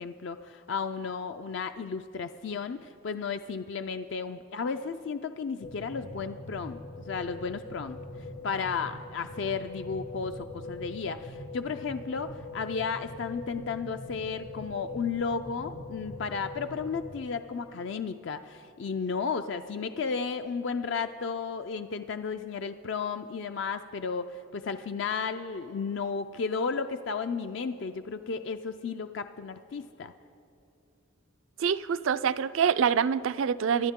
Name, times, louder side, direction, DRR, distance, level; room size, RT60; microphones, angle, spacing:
voice 1, 0.0-8.0 8.4-30.1, left 5 dB, 55° left, 8 dB, 0.4 m, -33 dB
sound 1, 5.6-17.2, left 2 dB, 75° left, 1.4 m, -42 dB
voice 2, 31.6-33.9, right 7 dB, 70° right, 16 dB, 0.4 m, -25 dB
25.5 x 11.0 x 3.7 m, 2.9 s
head